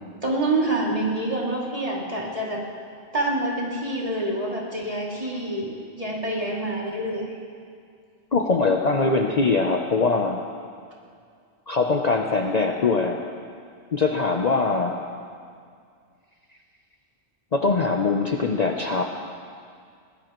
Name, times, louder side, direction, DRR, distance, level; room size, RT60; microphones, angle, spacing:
voice 1, 0.2-2.6 3.1-7.4, right 1 dB, 30° right, -4 dB, 2.7 m, -27 dB
voice 2, 8.3-10.4 11.7-13.2 13.9-15.1 17.5-19.0, left 3 dB, 40° left, 2 dB, 0.8 m, -22 dB
21.0 x 18.0 x 3.1 m, 2.2 s
omnidirectional pair, 1.1 m